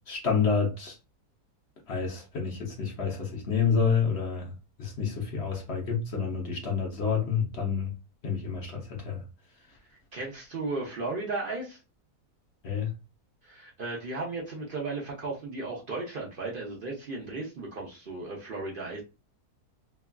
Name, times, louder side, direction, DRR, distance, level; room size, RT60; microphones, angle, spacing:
voice 1, 0.1-1.0 1.9-4.5 4.8-7.9 8.2-9.2 12.6-12.9, left 6 dB, 55° left, 0.8 m, -28 dB
voice 2, 10.1-11.8 13.4-19.0, right 3 dB, 60° right, 0.5 m, -35 dB
3.2 x 2.3 x 2.2 m
omnidirectional pair, 1.7 m